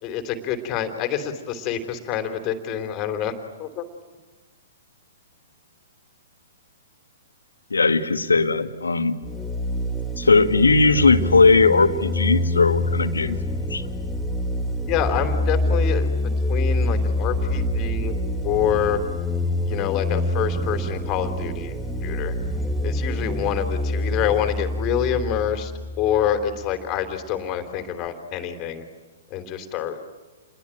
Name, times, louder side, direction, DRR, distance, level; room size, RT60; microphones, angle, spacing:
voice 1, 0.0-3.3 3.6-3.8 14.8-16.2 16.5-18.1 18.4-19.0 19.6-22.3 22.8-25.7 26.0-28.8 29.3-30.1, left 9 dB, 30° left, 8 dB, 3.4 m, -26 dB
voice 2, 7.7-9.2 10.2-13.4 13.7-13.9, left 4 dB, 75° left, 9 dB, 1.9 m, -18 dB
sound 1, 9.2-26.6, left 1 dB, 5° left, 1.8 m, -26 dB
29.5 x 22.0 x 9.1 m, 1.3 s
figure-of-eight pair, 115°, 0 cm